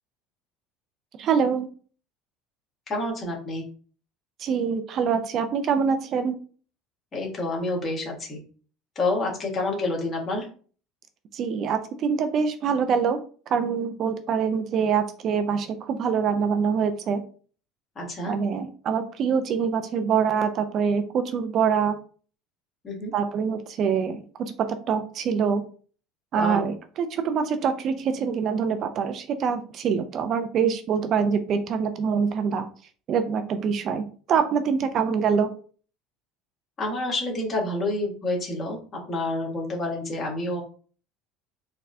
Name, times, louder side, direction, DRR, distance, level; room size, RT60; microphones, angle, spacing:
voice 1, 1.2-1.7 4.4-6.4 11.3-13.2 13.5-17.2 18.3-21.9 23.1-25.6 26.3-32.7 33.1-34.0 34.3-35.5, right 6 dB, 50° right, 9 dB, 0.4 m, -25 dB
voice 2, 2.9-3.6 7.1-8.4 8.9-10.5 17.9-18.4 22.8-23.1 26.3-26.7 36.8-40.6, left 2 dB, 35° left, -1 dB, 1.5 m, -28 dB
4.1 x 2.1 x 2.6 m, 0.41 s
supercardioid pair, 95°, 0 cm